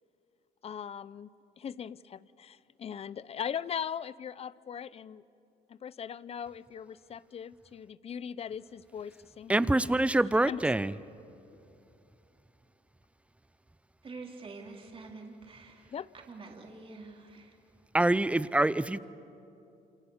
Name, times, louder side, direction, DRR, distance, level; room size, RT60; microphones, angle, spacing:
voice 1, 0.6-5.2 5.7-10.0 10.5-10.7 15.9-16.1, left 8 dB, 35° left, 18 dB, 0.7 m, -40 dB
voice 2, 9.5-10.9 17.9-19.0, right 1 dB, 5° right, 16 dB, 0.6 m, -25 dB
voice 3, 14.0-17.6, right 3 dB, 35° right, 0 dB, 3.7 m, -47 dB
28.5 x 28.0 x 7.3 m, 2.8 s
cardioid pair, 110°, 17 cm